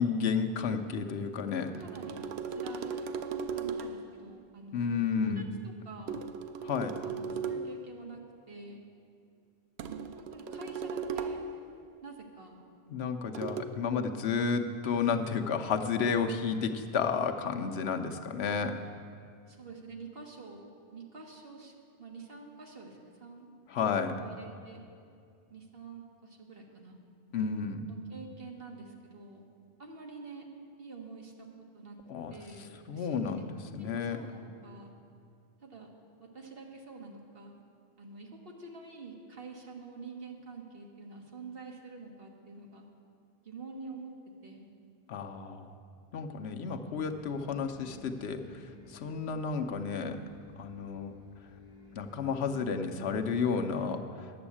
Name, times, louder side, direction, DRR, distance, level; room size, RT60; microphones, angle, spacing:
voice 1, 0.0-1.7 4.7-5.4 6.6-7.0 12.9-18.7 23.7-24.1 27.3-27.8 32.1-32.3 32.9-33.5 33.7-34.2 45.1-45.7 46.1-51.1 51.9-54.3, left 6 dB, 90° left, 6 dB, 1.0 m, -32 dB
sound 1, 1.3-4.1 6.1-7.8 9.8-11.6 13.3-13.6, right 5 dB, 80° right, 0.9 m, -37 dB
voice 2, 1.8-3.1 3.5-4.8 5.1-6.2 7.0-8.9 9.8-11.4 12.0-12.6 19.4-21.7 22.0-23.5 23.8-24.8 25.5-27.0 27.9-29.4 29.8-30.5 30.8-31.3 31.7-32.0 32.3-33.4 33.8-34.9 35.6-35.9 36.2-37.5 38.0-42.8 43.4-44.1 44.4-44.7, right 3 dB, 65° right, 1 dB, 1.6 m, -47 dB
sound 2, 46.9-53.4, left 4 dB, 20° left, 3.0 m, -56 dB
10.5 x 7.0 x 8.5 m, 2.4 s
omnidirectional pair, 1.1 m